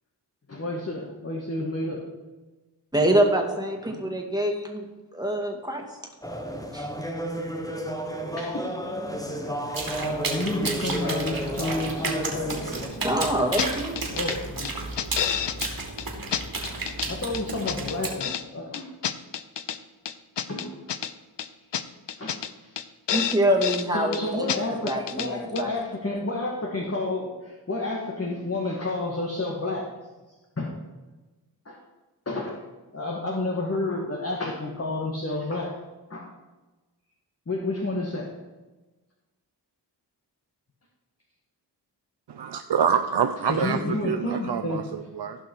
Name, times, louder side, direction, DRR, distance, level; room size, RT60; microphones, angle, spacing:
voice 1, 0.5-2.0 8.3-13.2 14.1-15.0 17.1-18.9 20.5-20.7 22.1-22.8 23.9-29.9 30.6-30.8 31.6-31.8 32.2-32.6 32.9-35.7 36.1-36.3 37.5-38.3 43.5-44.8, left 2 dB, 35° left, -1 dB, 1.7 m, -31 dB
voice 2, 2.9-4.9 5.1-5.8 6.7-6.9 13.0-14.0 23.1-24.5 24.8-25.7, right 1 dB, 10° right, 1 dB, 2.2 m, -25 dB
sound 1, 6.2-12.9, equal, 10° left, 1.3 m, -32 dB
sound 2, 9.7-18.1, right 3 dB, 50° right, 2.5 m, -33 dB
sound 3, 13.2-13.3 13.6-13.7 14.0-14.4 14.7-15.7 16.0-16.1 16.3-17.1 17.3-18.4 18.7-19.8 20.1-21.1 21.4-21.5 21.7-21.8 22.1-22.5 22.8-22.9 23.1-23.9 24.1-24.2 24.5-24.6 24.9-25.3 25.6-25.7, left 9 dB, 70° left, 0.7 m, -29 dB
voice 3, 42.3-45.4, right 7 dB, 70° right, 8 dB, 0.6 m, -26 dB
16.0 x 5.6 x 4.6 m, 1.2 s
cardioid pair, 60°, 43 cm